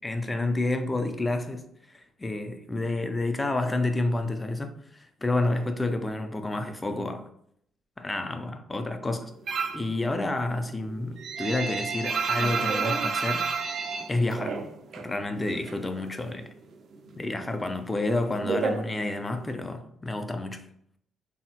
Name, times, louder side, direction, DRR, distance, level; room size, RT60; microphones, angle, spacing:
voice 1, 0.0-7.3 8.0-9.3 9.7-13.8 14.1-14.6 15.0-16.5 17.2-20.6, left 2 dB, 20° left, 0.4 m, -29 dB
sound 1, 9.5-9.9 10.3-15.1 15.4-16.4 16.7-19.5, right 5 dB, 60° right, 0.3 m, -30 dB
3.5 x 2.0 x 2.7 m
cardioid pair, 90°, 0 cm